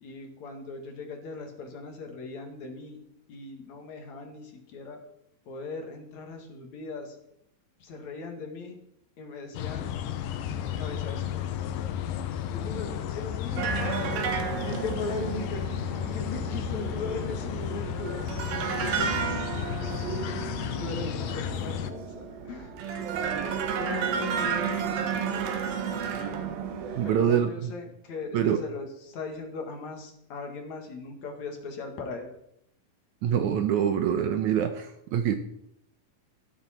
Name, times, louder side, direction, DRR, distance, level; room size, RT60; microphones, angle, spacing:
voice 1, 0.0-3.0 3.3-4.4 4.7-5.0 5.5-7.1 7.9-8.8 9.2-9.8 10.7-11.5 12.5-15.6 16.1-18.2 18.5-19.2 20.8-22.1 22.5-22.7 23.8-25.5 27.0-28.9 29.1-32.3, left 3 dB, 55° left, 4 dB, 2.9 m, -38 dB
sound 1, 9.5-21.9, left 9 dB, 75° left, 2.5 m, -33 dB
sound 2, 13.6-27.2, right 7 dB, 90° right, 3.3 m, -32 dB
voice 2, 27.0-27.7 28.3-28.6 33.2-35.4, right 9 dB, 70° right, 8 dB, 2.0 m, -25 dB
14.0 x 13.0 x 4.3 m, 0.76 s
omnidirectional pair, 4.0 m